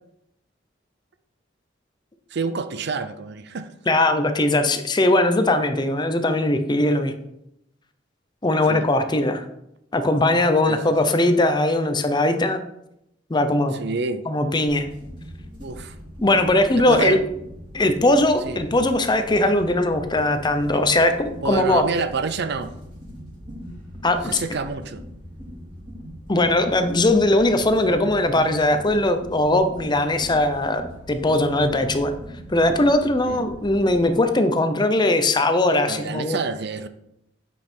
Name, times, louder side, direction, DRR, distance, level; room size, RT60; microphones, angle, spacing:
voice 1, 2.3-3.7 8.7-8.9 10.7-10.8 13.7-14.2 15.6-16.0 16.8-17.2 18.4-18.6 21.4-22.7 24.2-25.0 33.3-33.5 35.8-36.9, right 4 dB, 60° right, 11 dB, 0.6 m, -28 dB
voice 2, 3.9-7.1 8.4-9.4 9.9-12.6 13.3-13.7 14.3-14.9 16.2-17.2 17.7-21.8 24.0-24.4 26.3-30.8 31.1-32.1 32.5-36.4, left 1 dB, 25° left, 8 dB, 0.7 m, -20 dB
sound 1, 14.7-34.0, equal, 25° right, 2.6 m, -41 dB
8.5 x 5.4 x 4.5 m, 0.80 s
head